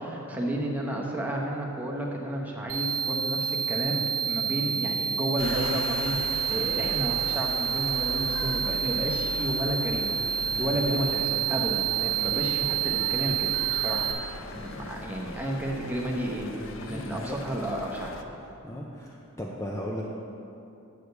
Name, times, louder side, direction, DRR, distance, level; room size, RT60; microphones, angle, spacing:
voice 1, 0.0-13.5 13.7-14.1 14.5-18.2, right 1 dB, 10° right, -2 dB, 0.9 m, -32 dB
sound 1, 2.7-14.1, right 8 dB, 80° right, 0.9 m, -28 dB
sound 2, 5.4-18.2, left 2 dB, 60° left, 0.5 m, -40 dB
voice 2, 10.5-10.8 16.8-17.4 18.6-20.1, left 1 dB, 15° left, -3 dB, 0.5 m, -37 dB
7.9 x 5.0 x 6.6 m, 2.8 s
head